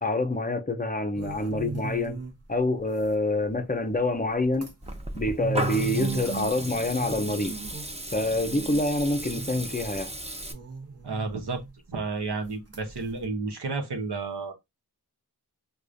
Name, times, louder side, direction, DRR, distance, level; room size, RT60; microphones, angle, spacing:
voice 1, 0.0-2.2 2.5-4.7 5.2-7.5 8.1-10.1, left 2 dB, 20° left, 0.5 m, -27 dB
sound 1, 1.2-2.6 3.0-3.1 3.7-3.8 4.4-8.8 9.2-10.0 10.5-11.7 12.3-12.5 12.7-13.3, right 4 dB, 40° right, 1.0 m, -36 dB
Water tap faucet / Liquid, 4.8-10.5, right 1 dB, 15° right, 0.8 m, -35 dB
voice 2, 11.0-11.6 11.9-14.5, right 3 dB, 80° right, 0.9 m, -31 dB
4.7 x 2.3 x 2.6 m
wide cardioid pair, 50°, 40 cm